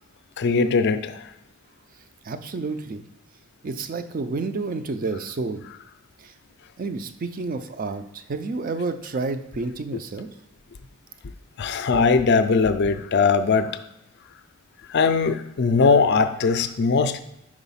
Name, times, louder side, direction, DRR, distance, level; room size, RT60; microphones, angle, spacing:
voice 1, 0.4-1.3 9.9-10.0 11.6-13.8 14.9-17.2, left 4 dB, 50° left, 10 dB, 0.4 m, -20 dB
voice 2, 2.2-3.0 3.6-5.7 6.2-6.3 6.8-10.3, right 3 dB, 40° right, 10 dB, 0.4 m, -30 dB
5.0 x 4.0 x 5.5 m, 0.88 s
head